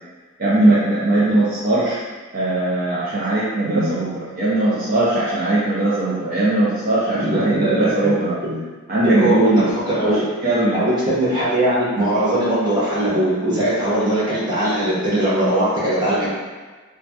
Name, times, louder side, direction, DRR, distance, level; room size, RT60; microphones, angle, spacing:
voice 1, 0.4-2.0 2.3-8.4 8.9-9.7 10.0-10.8, right 1 dB, 45° right, -9 dB, 0.5 m, -19 dB
voice 2, 7.2-8.6 9.0-10.2 10.7-16.3, right 1 dB, 20° right, -9 dB, 0.9 m, -20 dB
3.1 x 2.2 x 2.7 m, 1.3 s
head